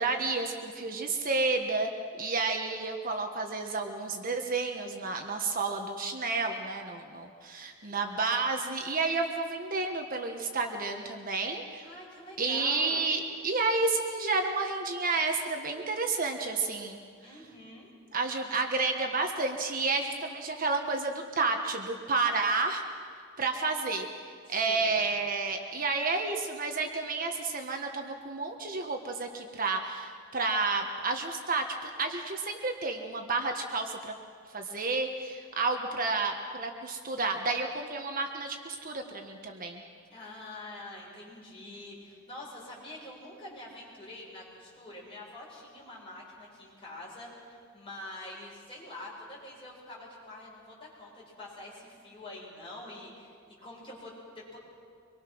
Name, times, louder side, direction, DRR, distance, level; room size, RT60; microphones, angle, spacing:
voice 1, 0.0-1.9 2.2-11.8 12.4-17.0 18.1-22.8 23.4-24.1 24.5-34.1 34.5-39.8, right 3 dB, 45° right, 4 dB, 1.4 m, -31 dB
voice 2, 11.8-13.0 17.2-17.9 24.5-25.0 40.1-53.3 53.6-54.6, left 1 dB, 25° left, -5 dB, 7.5 m, -45 dB
24.5 x 23.0 x 6.2 m, 2.2 s
head